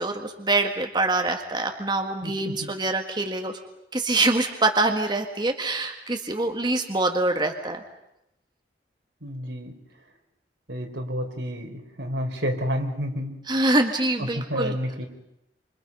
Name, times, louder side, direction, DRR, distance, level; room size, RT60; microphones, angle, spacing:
voice 1, 0.0-3.5 3.9-7.8 13.5-14.8, right 2 dB, 25° right, 4 dB, 1.8 m, -25 dB
voice 2, 2.2-2.5 9.2-9.7 10.7-13.4 14.2-15.1, equal, 85° right, 4 dB, 4.1 m, -30 dB
28.5 x 27.0 x 5.5 m, 0.85 s
head